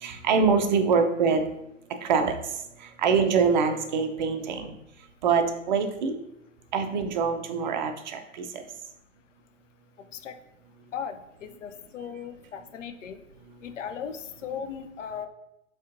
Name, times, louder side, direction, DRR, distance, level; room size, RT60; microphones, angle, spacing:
voice 1, 0.0-1.4 2.0-2.4 3.0-4.8 5.2-6.1 6.7-8.6, right 5 dB, 40° right, 6 dB, 0.4 m, -24 dB
voice 2, 10.9-13.2 13.6-15.3, left 7 dB, 70° left, 8 dB, 0.5 m, -37 dB
4.9 x 2.4 x 2.5 m, 0.83 s
figure-of-eight pair, 110°, 39 cm